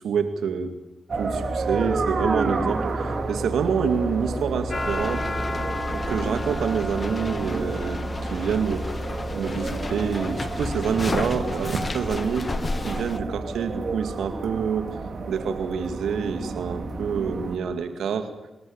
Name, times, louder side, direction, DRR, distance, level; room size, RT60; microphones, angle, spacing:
voice 1, 0.0-0.7 1.2-5.3 5.9-8.0 8.3-8.9 9.3-12.5 12.8-14.9 15.3-18.3, right 6 dB, 80° right, 8 dB, 2.1 m, -27 dB
sound 1, 1.1-17.6, right 3 dB, 60° right, 3.9 m, -30 dB
sound 2, 4.7-13.2, left 3 dB, 40° left, 1.3 m, -32 dB
27.5 x 13.5 x 8.7 m, 1.0 s
supercardioid pair, 45°, 0 cm